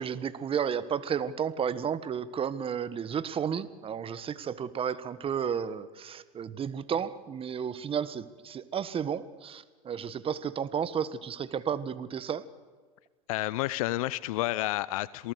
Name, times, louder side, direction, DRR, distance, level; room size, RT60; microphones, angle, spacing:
voice 1, 0.0-12.4, right 7 dB, 30° right, 15 dB, 1.5 m, -32 dB
voice 2, 13.3-15.3, left 17 dB, 70° left, 19 dB, 0.7 m, -30 dB
27.0 x 19.0 x 8.2 m, 1.4 s
hypercardioid pair, 90°, 19 cm